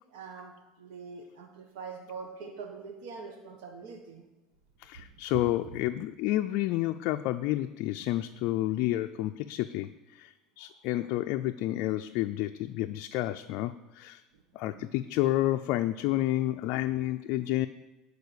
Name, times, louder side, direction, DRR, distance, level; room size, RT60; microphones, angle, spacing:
voice 1, 0.1-4.2 10.6-10.7 14.6-14.9, right 5 dB, 80° right, 2 dB, 1.5 m, -44 dB
voice 2, 4.8-14.2 14.5-17.7, left 15 dB, 60° left, 7 dB, 0.4 m, -30 dB
11.5 x 4.7 x 8.3 m, 1.1 s
supercardioid pair, 135°, 0 cm